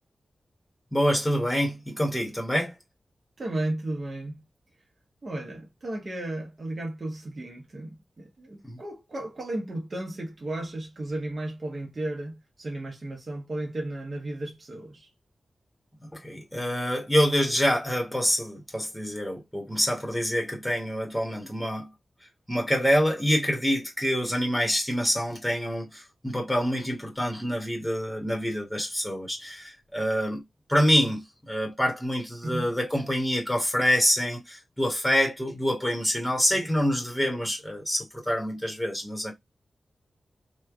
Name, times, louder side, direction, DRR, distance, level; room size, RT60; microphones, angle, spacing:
voice 1, 0.9-2.8 8.6-8.8 16.1-21.9 22.5-30.4 30.7-39.3, equal, ahead, 1.1 m, -26 dB
voice 2, 3.4-4.4 5.2-15.1 32.4-32.7 36.5-36.9, right 1 dB, 40° right, 0.9 m, -34 dB
3.2 x 2.2 x 3.4 m
wide cardioid pair, 130°, 0 cm